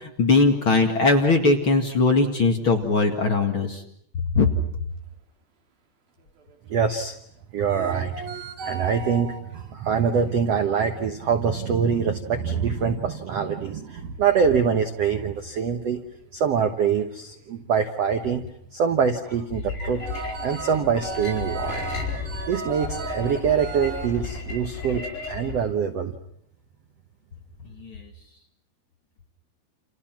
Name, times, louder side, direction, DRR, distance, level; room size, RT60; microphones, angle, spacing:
voice 1, 0.0-3.8 4.3-4.5 27.8-28.0, left 3 dB, 40° left, 3 dB, 2.1 m, -20 dB
sound 1, 6.2-6.8 7.6-9.6 10.1-10.3 10.8-11.1 11.5-11.6 11.8-12.0 16.0-16.3 16.7-16.8 17.0-17.2 18.1-18.4 19.7-24.1, right 4 dB, 60° right, 4.9 m, -36 dB
voice 2, 6.7-7.2 7.5-8.3 8.6-16.0 16.3-18.4 18.7-20.1 20.4-21.9 22.5-26.1, right 6 dB, 85° right, 7 dB, 1.4 m, -24 dB
sound 2, 19.5-25.6, left 4 dB, 80° left, 7.8 m, -34 dB
29.5 x 29.0 x 6.0 m, 0.68 s
omnidirectional pair, 4.9 m